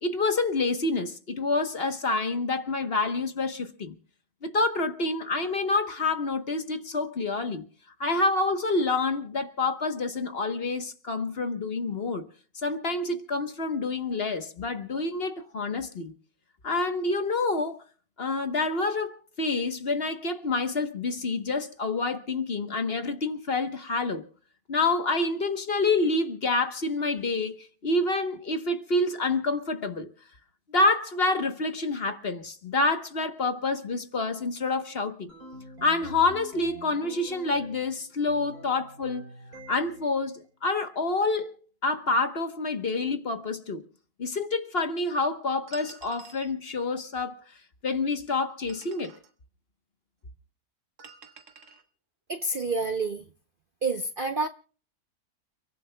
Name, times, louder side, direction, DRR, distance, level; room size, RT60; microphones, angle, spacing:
voice 1, 0.0-3.9 4.4-7.7 8.0-12.2 12.6-16.1 16.6-17.8 18.2-24.3 24.7-30.1 30.7-35.3 35.8-39.3 39.7-41.6 41.8-43.8 44.2-47.4 47.8-49.1, left 3 dB, 40° left, 1.3 m, -28 dB
sound 1, 35.3-37.9 38.3-40.1, right 1 dB, 70° right, 3.8 m, -46 dB
sound 2, 45.7-46.5 48.5-49.3 51.0-51.8, right 6 dB, 90° right, 1.9 m, -49 dB
voice 2, 52.3-53.2 53.8-54.5, right 3 dB, 45° right, 0.8 m, -28 dB
30.0 x 15.5 x 2.3 m
omnidirectional pair, 1.6 m